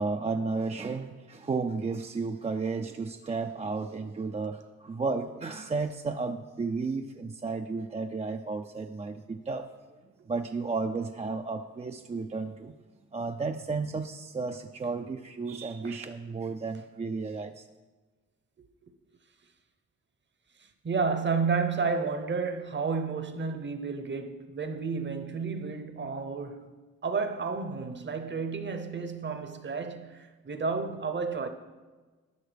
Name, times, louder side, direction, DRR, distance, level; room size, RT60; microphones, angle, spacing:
voice 1, 0.0-12.7 13.1-17.7, right 4 dB, 20° right, 0.4 m, -33 dB
voice 2, 20.6-26.7 27.0-31.5, right 5 dB, 35° right, 0.8 m, -31 dB
12.5 x 5.7 x 3.4 m
cardioid pair, 70°, 31 cm